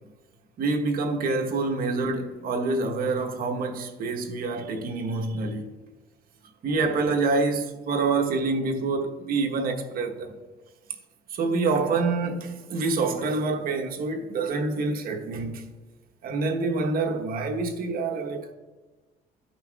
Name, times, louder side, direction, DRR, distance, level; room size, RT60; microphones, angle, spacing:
voice 1, 0.6-5.7 6.6-10.3 11.3-15.6 16.2-18.5, right 3 dB, 60° right, 1.1 m, -27 dB
14.5 x 5.7 x 2.3 m
cardioid pair, 110°, 17 cm